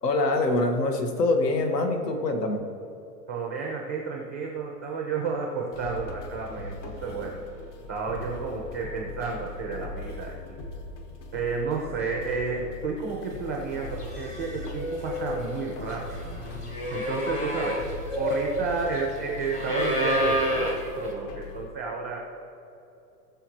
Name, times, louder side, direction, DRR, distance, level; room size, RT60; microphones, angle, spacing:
voice 1, 0.0-2.7, left 2 dB, 85° left, 4 dB, 1.8 m, -24 dB
voice 2, 3.3-7.4 7.9-10.6 11.3-16.2 16.9-22.2, right 4 dB, 10° right, -1 dB, 0.3 m, -31 dB
sound 1, 5.7-21.7, left 3 dB, 45° left, 1.4 m, -40 dB
sound 2, 13.6-13.7 14.0-21.1, equal, 15° left, 0.7 m, -30 dB
19.0 x 6.9 x 3.1 m, 2.8 s
hypercardioid pair, 165°, 47 cm